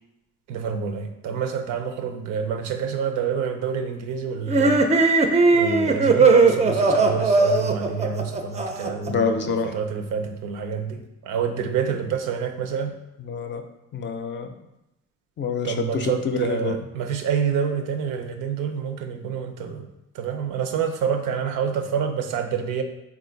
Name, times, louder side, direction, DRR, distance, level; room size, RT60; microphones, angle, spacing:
voice 1, 0.5-5.2 5.5-12.9 15.6-19.9 20.1-22.8, right 7 dB, 90° right, 5 dB, 0.5 m, -28 dB
sound 1, 4.5-9.1, right 3 dB, 25° right, 0.4 m, -18 dB
voice 2, 9.1-9.7 13.2-13.6 13.9-14.5 15.4-16.8, left 5 dB, 40° left, 6 dB, 0.4 m, -26 dB
3.7 x 2.4 x 3.8 m, 0.88 s
cardioid pair, 90°, 30 cm